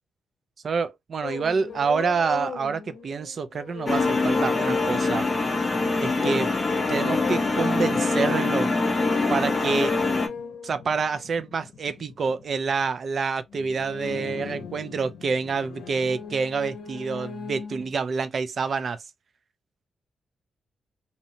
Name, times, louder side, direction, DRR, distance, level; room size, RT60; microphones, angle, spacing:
voice 1, 0.6-5.3 6.0-6.5 6.9-8.7 9.3-10.0 10.6-19.0, right 5 dB, 45° right, 0.3 m, -27 dB
sound 1, 1.2-5.6 6.0-12.6 13.5-17.9, left 6 dB, 70° left, 0.7 m, -39 dB
sound 2, 3.9-10.3, left 3 dB, 20° left, 0.5 m, -24 dB
2.7 x 2.1 x 2.7 m
wide cardioid pair, 150°, 0 cm